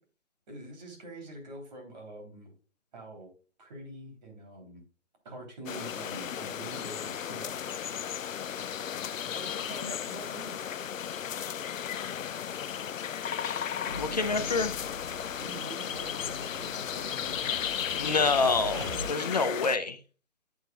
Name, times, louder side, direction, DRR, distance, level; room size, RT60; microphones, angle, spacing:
voice 1, 0.5-2.5 2.9-3.3 3.6-4.8 5.2-7.6 9.2-10.5 14.1-14.7 15.4-17.5, right 1 dB, 35° right, 2 dB, 3.2 m, -45 dB
sound 1, 5.7-19.8, left 8 dB, 90° left, 0.5 m, -35 dB
sound 2, 13.9-15.5 15.8-19.1, equal, 20° right, 0.8 m, -43 dB
voice 2, 14.0-14.7 17.9-20.0, left 4 dB, 35° left, 9 dB, 0.6 m, -27 dB
8.9 x 8.9 x 2.3 m, 0.36 s
hypercardioid pair, 160°, 38 cm